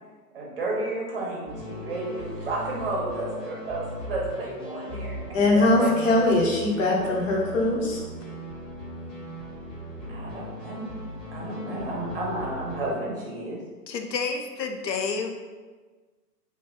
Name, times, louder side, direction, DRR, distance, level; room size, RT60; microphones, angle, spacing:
voice 1, 0.3-5.2 5.5-6.2 10.1-10.9 11.3-13.6, right 2 dB, 35° right, -3 dB, 0.8 m, -32 dB
sound 1, 1.5-13.0, equal, 10° left, 1.1 m, -38 dB
voice 2, 5.3-8.0, left 2 dB, 50° left, -2 dB, 0.9 m, -21 dB
voice 3, 13.9-15.3, left 5 dB, 85° left, 4 dB, 0.6 m, -29 dB
2.7 x 2.3 x 3.7 m, 1.4 s
figure-of-eight pair, 135°, 49 cm